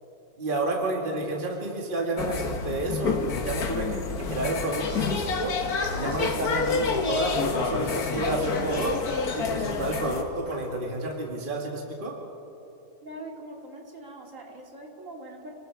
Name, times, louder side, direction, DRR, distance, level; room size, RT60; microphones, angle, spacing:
voice 1, 0.4-5.6 5.9-9.0 9.3-12.2, right 2 dB, 35° right, 0 dB, 2.1 m, -30 dB
sound 1, 2.2-10.2, left 5 dB, 85° left, 1.8 m, -28 dB
sound 2, 4.8-11.1, right 1 dB, 85° right, 5.3 m, -45 dB
voice 2, 13.0-15.5, right 1 dB, 60° right, 0 dB, 2.8 m, -42 dB
29.0 x 19.0 x 4.7 m, 2.8 s
omnidirectional pair, 1.6 m